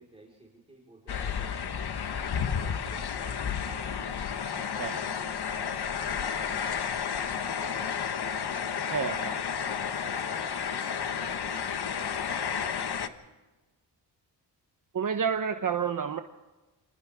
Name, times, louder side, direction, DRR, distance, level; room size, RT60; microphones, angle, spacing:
voice 1, 0.0-1.5 2.0-13.2, right 2 dB, 15° right, -3 dB, 4.7 m, -53 dB
sound 1, 1.1-13.1, left 7 dB, 65° left, 1.4 m, -32 dB
voice 2, 8.9-9.4 14.9-16.2, right 7 dB, 50° right, 7 dB, 1.1 m, -29 dB
29.0 x 26.0 x 3.7 m, 1.2 s
wide cardioid pair, 115°, 42 cm